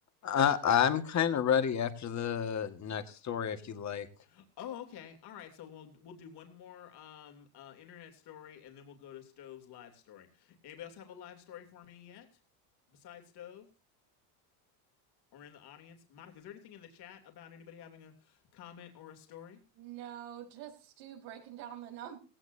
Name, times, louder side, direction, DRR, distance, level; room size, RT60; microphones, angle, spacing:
voice 1, 0.2-4.1, left 8 dB, 35° left, 9 dB, 1.9 m, -29 dB
voice 2, 4.2-12.3 12.9-13.7 15.3-19.6, left 9 dB, 55° left, 4 dB, 3.2 m, -50 dB
voice 3, 19.7-22.2, right 11 dB, 80° right, 2 dB, 4.8 m, -45 dB
17.5 x 17.0 x 2.8 m, 0.35 s
supercardioid pair, 115°, 48 cm